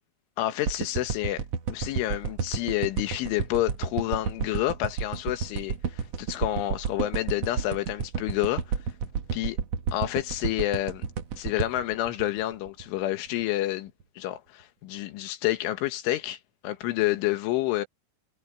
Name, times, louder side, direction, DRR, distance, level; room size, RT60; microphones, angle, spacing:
voice 1, 0.4-1.4 1.7-8.8 9.3-9.6 9.9-11.1 11.4-17.9, left 15 dB, 85° left, 3.9 m, -29 dB
sound 1, 0.7-13.0 13.4-13.5, right 6 dB, 75° right, 1.4 m, -31 dB
omnidirectional pair, 5.4 m